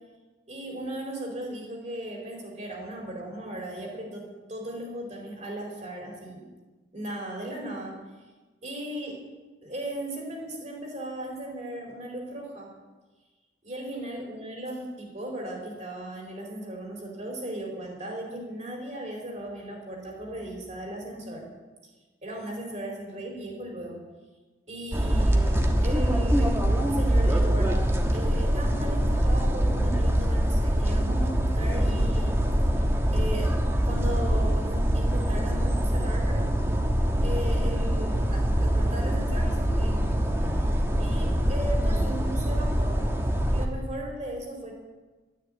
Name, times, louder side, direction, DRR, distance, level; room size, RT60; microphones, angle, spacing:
voice 1, 0.5-6.5 6.9-8.0 8.6-9.2 9.6-12.7 13.6-21.5 22.2-24.0 24.7-32.4 33.1-33.6 33.9-36.5 37.2-40.0 41.0-43.1 43.5-44.7, right 1 dB, 40° right, 0 dB, 4.6 m, -37 dB
sound 1, 24.9-43.7, equal, 15° right, 1.4 m, -24 dB
12.5 x 10.0 x 9.0 m, 1.3 s
head